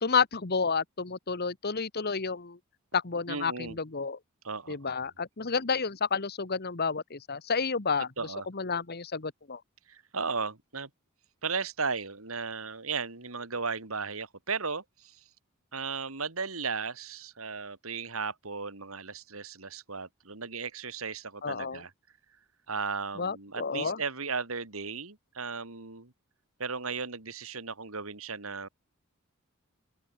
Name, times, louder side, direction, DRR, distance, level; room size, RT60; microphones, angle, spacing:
voice 1, 0.0-2.6 2.9-4.2 4.7-8.1 8.5-9.6 21.4-21.8 23.2-24.0, left 5 dB, 50° left, 1.3 m, -30 dB
voice 2, 3.3-3.8 4.4-4.9 8.2-8.5 9.9-10.9 11.4-15.2 15.7-21.9 22.7-26.1 26.6-28.7, right 5 dB, 80° right, 2.8 m, -35 dB
open air
head